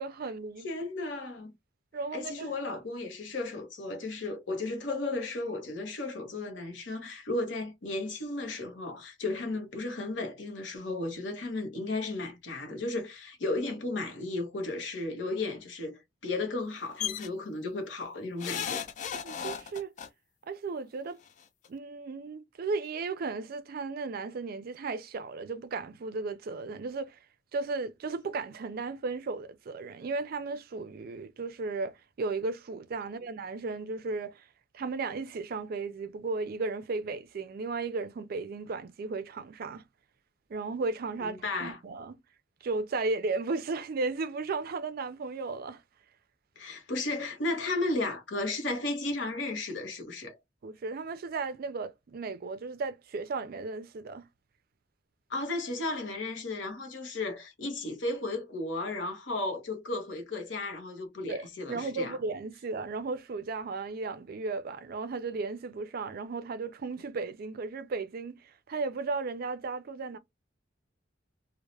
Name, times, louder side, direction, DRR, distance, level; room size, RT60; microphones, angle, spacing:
voice 1, 0.0-0.7 1.9-2.5 19.2-19.9 20.5-21.2 21.7-27.2 27.5-34.5 34.7-39.8 40.5-42.2 42.6-45.8 50.6-54.2 61.3-70.2, right 3 dB, 50° right, 0.4 m, -35 dB
voice 2, 0.6-1.5 2.1-18.9 41.2-41.8 46.6-50.4 55.3-62.1, left 2 dB, 70° left, 0.9 m, -34 dB
sound 1, 17.0-17.3 18.4-20.1 21.3-21.4 21.7-21.8, left 8 dB, 40° left, 0.3 m, -35 dB
2.3 x 2.0 x 3.1 m
head